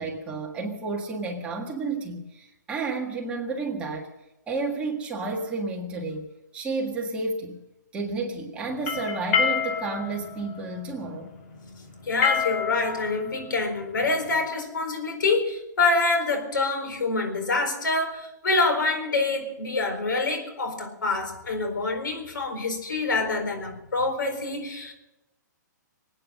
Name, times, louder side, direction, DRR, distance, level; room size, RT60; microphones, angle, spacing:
voice 1, 0.0-4.1 4.5-7.6 7.9-11.3, right 3 dB, 10° right, 0 dB, 1.6 m, -31 dB
sound 1, 8.7-14.4, left 7 dB, 40° left, 2.2 m, -28 dB
voice 2, 12.0-24.9, left 3 dB, 85° left, 6 dB, 4.4 m, -26 dB
23.5 x 9.2 x 6.4 m, 0.95 s
hypercardioid pair, 160°, 10 cm